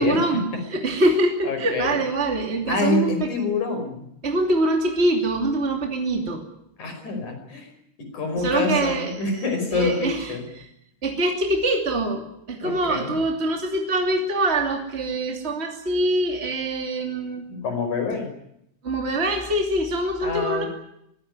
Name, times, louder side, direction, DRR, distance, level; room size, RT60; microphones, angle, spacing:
voice 1, 0.0-3.3 4.2-6.4 8.4-9.4 9.7-10.6 11.0-17.5 18.8-20.6, right 1 dB, 25° right, 3 dB, 1.4 m, -24 dB
voice 2, 1.4-2.0 2.7-4.0 6.8-7.7 8.0-10.4 12.6-13.1 17.5-18.3 20.2-20.7, left 3 dB, 35° left, 6 dB, 6.2 m, -26 dB
23.0 x 17.0 x 9.6 m, 0.77 s
omnidirectional pair, 5.9 m